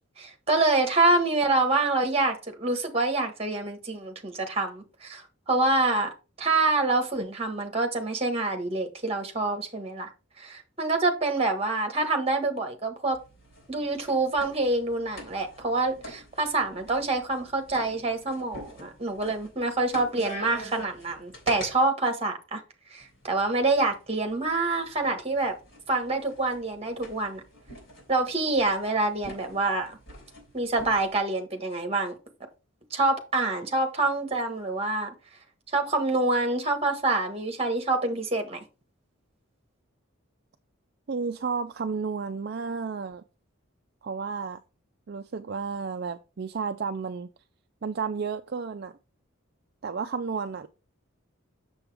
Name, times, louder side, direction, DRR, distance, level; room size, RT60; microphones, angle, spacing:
voice 1, 0.2-6.1 6.4-10.1 10.4-13.2 13.7-22.6 22.9-25.5 25.9-27.4 28.1-30.0 30.5-32.2 32.9-35.1 35.7-38.6, right 2 dB, 30° right, 1.4 m, -26 dB
sound 1, 13.1-21.7 23.0-31.2, equal, 65° left, 3.6 m, -45 dB
voice 2, 41.1-43.2 44.0-44.6 45.1-47.3 47.8-48.9 49.8-50.7, right 5 dB, 50° right, 0.4 m, -32 dB
7.1 x 6.9 x 3.4 m
head